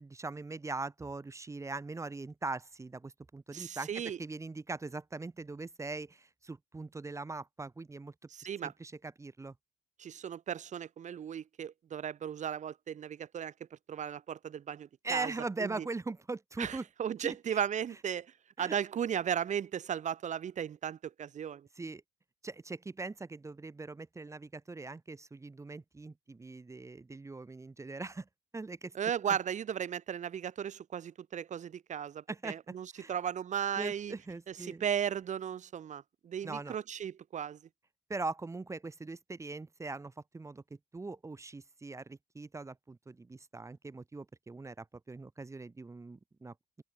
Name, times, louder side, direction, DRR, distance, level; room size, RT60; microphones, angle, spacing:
voice 1, 0.0-8.1 8.6-9.5 15.0-16.8 17.2-17.6 18.6-18.8 21.8-22.0 22.4-29.0 32.3-32.6 32.9-33.1 33.8-34.8 36.4-36.8 38.1-40.6 40.9-46.8, right 3 dB, 15° right, 2.0 m, -41 dB
voice 2, 3.5-4.2 8.3-8.7 10.0-13.5 13.9-15.3 15.6-15.9 16.6-21.7 28.9-34.1 34.5-37.6, right 8 dB, 45° right, 1.9 m, -36 dB
cardioid pair, 110°, 17 cm